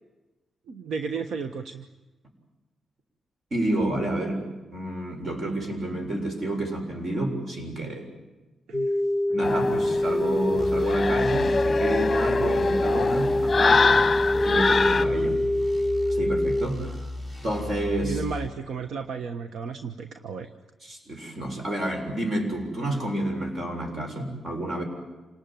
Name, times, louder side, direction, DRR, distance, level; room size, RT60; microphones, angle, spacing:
voice 1, 0.7-1.8 8.7-9.0 18.0-20.5, right 5 dB, 75° right, 9 dB, 1.2 m, -33 dB
voice 2, 3.5-4.4 4.7-8.0 9.3-14.0 14.5-15.4 16.1-17.1 17.4-18.2 20.8-24.8, right 1 dB, 45° right, 4 dB, 7.2 m, -29 dB
sound 1, 8.7-16.7, left 1 dB, 5° right, 1.7 m, -25 dB
sound 2, 9.4-15.1, left 4 dB, 30° left, 1.1 m, -25 dB
sound 3, 10.6-18.5, left 1 dB, 25° right, 5.3 m, -36 dB
27.5 x 19.0 x 9.3 m, 1.2 s
cardioid pair, 95°, 0 cm